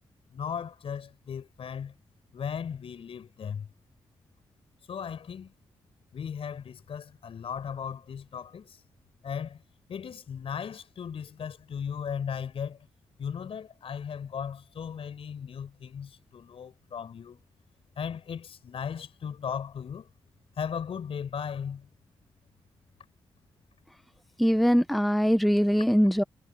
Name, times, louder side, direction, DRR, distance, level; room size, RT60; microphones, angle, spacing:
voice 1, 0.3-1.9 2.3-3.7 4.9-5.5 6.1-8.8 9.2-9.6 9.9-12.8 13.2-17.4 18.0-20.1 20.6-21.9, left 7 dB, 70° left, 4.6 m, -36 dB
voice 2, 24.4-26.2, equal, ahead, 0.7 m, -22 dB
supercardioid pair, 40°, 10 cm